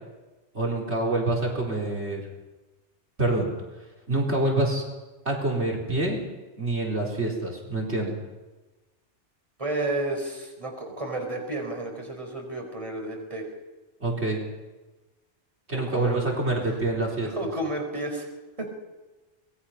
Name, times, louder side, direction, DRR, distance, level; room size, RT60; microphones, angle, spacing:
voice 1, 0.5-2.2 3.2-3.5 3.8-4.8 5.3-6.2 6.6-8.2 14.0-14.4 15.7-17.3, right 2 dB, 65° right, 0 dB, 4.3 m, -26 dB
voice 2, 9.6-13.5 15.7-16.4 17.2-18.3 18.6-18.7, right 2 dB, 25° right, 2 dB, 4.6 m, -32 dB
24.5 x 21.0 x 5.8 m, 1.2 s
omnidirectional pair, 1.2 m